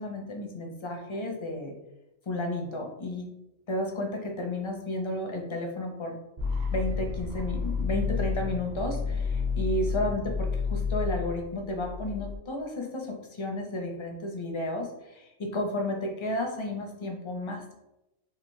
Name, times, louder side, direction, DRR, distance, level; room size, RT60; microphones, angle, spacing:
voice 1, 0.0-1.7 2.3-3.3 3.7-6.2 6.7-17.7, left 1 dB, 40° left, 2 dB, 0.4 m, -32 dB
sound 1, 6.4-12.4, left 5 dB, 45° right, 0.8 m, -30 dB
3.6 x 2.9 x 3.1 m, 0.90 s
omnidirectional pair, 1.3 m